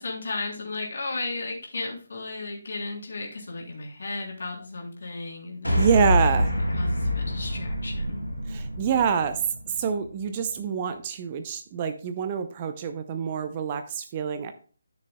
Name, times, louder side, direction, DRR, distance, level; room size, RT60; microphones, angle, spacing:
voice 1, 0.0-5.9 6.7-8.3, left 3 dB, 50° left, -1 dB, 3.3 m, -34 dB
sound 1, 5.6-10.1, equal, 85° left, 4.0 m, -26 dB
voice 2, 5.7-6.5 8.5-9.4 9.8-14.5, right 6 dB, 25° right, 9 dB, 0.6 m, -26 dB
13.0 x 6.6 x 2.2 m, 0.41 s
figure-of-eight pair, 150°, 0 cm